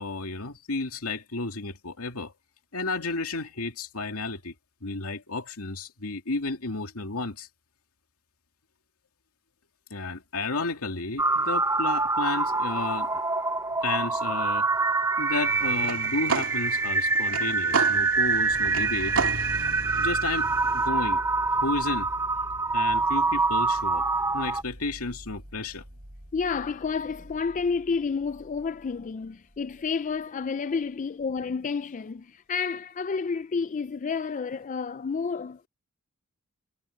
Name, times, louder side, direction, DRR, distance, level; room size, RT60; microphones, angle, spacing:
voice 1, 0.0-2.3 2.7-4.5 4.8-7.5 9.9-13.2 13.8-14.7 15.2-19.2 20.0-20.5 20.7-21.2 21.6-22.1 22.7-24.1 24.3-25.8, left 3 dB, 75° left, 2.5 m, -32 dB
sound 1, 11.2-24.6, right 3 dB, 15° right, 0.6 m, -25 dB
Silla con ruedas, 15.4-20.9, right 4 dB, 65° right, 2.3 m, -33 dB
sound 2, 17.9-30.3 30.8-30.9, equal, 45° right, 4.3 m, -45 dB
voice 2, 19.6-20.3 20.9-21.1 26.3-35.7, left 5 dB, 35° left, 0.4 m, -30 dB
head